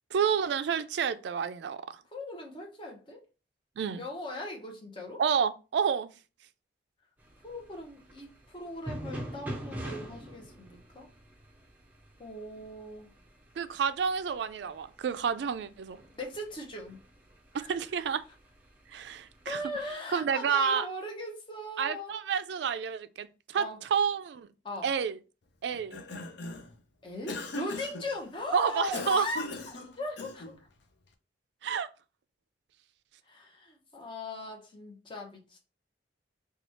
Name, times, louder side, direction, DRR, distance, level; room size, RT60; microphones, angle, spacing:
voice 1, 0.1-2.0 3.8-4.0 5.2-6.1 13.6-16.0 17.7-18.2 18.9-19.6 20.1-20.9 21.8-24.5 24.8-25.2 25.6-26.0 28.5-29.3 31.6-31.9, right 7 dB, 70° right, 0.3 m, -29 dB
voice 2, 2.1-3.2 4.0-5.2 7.4-11.1 12.2-13.1 16.1-17.0 17.5-17.8 19.5-22.2 23.5-23.8 24.6-24.9 27.0-30.4 33.3-35.6, left 1 dB, 25° left, 0.8 m, -39 dB
sound 1, 7.2-19.9, right 1 dB, 10° right, 0.5 m, -46 dB
Cough, 25.7-26.7 27.3-28.1 28.9-30.6, left 2 dB, 70° left, 0.5 m, -39 dB
3.0 x 2.3 x 4.1 m
head